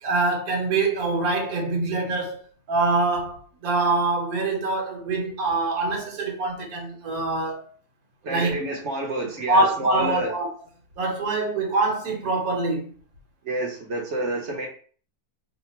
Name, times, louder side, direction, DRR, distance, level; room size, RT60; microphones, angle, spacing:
voice 1, 0.0-2.4 2.7-7.7 8.2-8.6 9.5-10.5 11.0-12.8, right 3 dB, 75° right, 1.5 m, -24 dB
voice 2, 8.2-10.3 13.4-14.7, right 1 dB, 55° right, 1.1 m, -29 dB
3.2 x 2.4 x 4.3 m
omnidirectional pair, 1.6 m